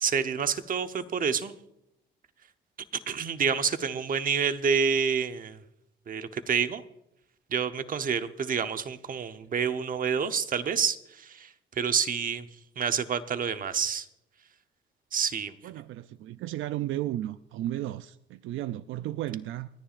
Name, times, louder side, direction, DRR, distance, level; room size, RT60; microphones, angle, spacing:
voice 1, 0.0-1.5 3.1-5.6 6.1-6.8 7.5-11.5 11.8-12.4 12.8-14.0 15.1-15.5, right 6 dB, 45° right, 0.9 m, -28 dB
voice 2, 15.6-19.7, right 14 dB, 80° right, 0.4 m, -34 dB
29.0 x 10.0 x 2.5 m
cardioid pair, 90°, 20 cm